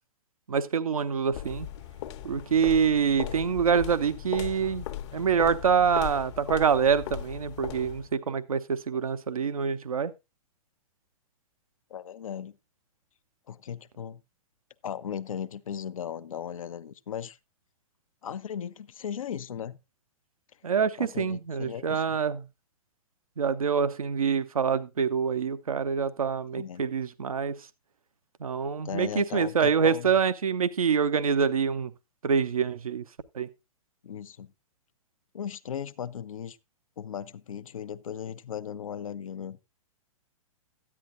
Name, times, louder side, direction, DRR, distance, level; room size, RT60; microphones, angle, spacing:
voice 1, 0.5-1.7 2.2-4.8 5.1-10.1 20.6-22.4 23.4-27.6 28.4-31.9 32.2-33.0 33.3-33.5, right 6 dB, 80° right, 0.7 m, -26 dB
sound 1, 1.3-8.2, left 11 dB, 55° left, 1.0 m, -38 dB
voice 2, 11.9-12.6 13.5-14.2 14.8-17.4 18.2-19.8 21.0-22.2 26.5-26.8 28.8-30.1 34.0-34.5 35.3-36.6 37.0-39.6, left 8 dB, 70° left, 0.7 m, -37 dB
13.5 x 9.7 x 2.5 m
figure-of-eight pair, 115°, 18 cm